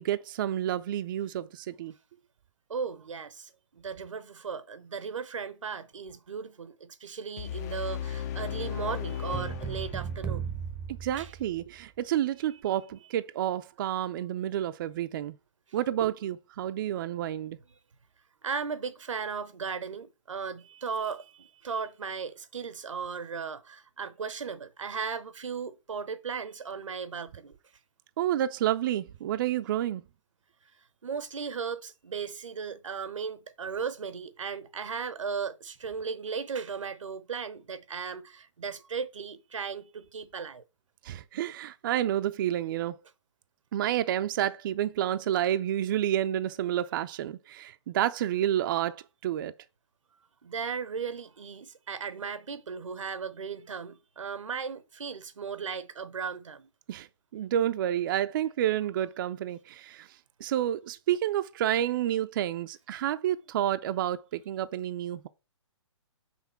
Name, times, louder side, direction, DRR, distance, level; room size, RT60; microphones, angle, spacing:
voice 1, 0.0-1.9 11.0-15.4 15.7-17.6 28.2-30.0 41.0-43.0 43.7-49.5 56.9-57.1 57.3-60.1 60.4-65.3, right 11 dB, 45° right, 0.4 m, -29 dB
voice 2, 2.7-10.5 11.2-11.3 18.4-27.5 31.0-40.6 50.4-56.7, right 6 dB, 85° right, 0.8 m, -36 dB
sound 1, 7.4-10.4, left 10 dB, 30° left, 0.5 m, -36 dB
sound 2, 9.3-11.8, right 7 dB, 5° right, 0.7 m, -36 dB
5.9 x 3.7 x 5.6 m
hypercardioid pair, 140°, 16 cm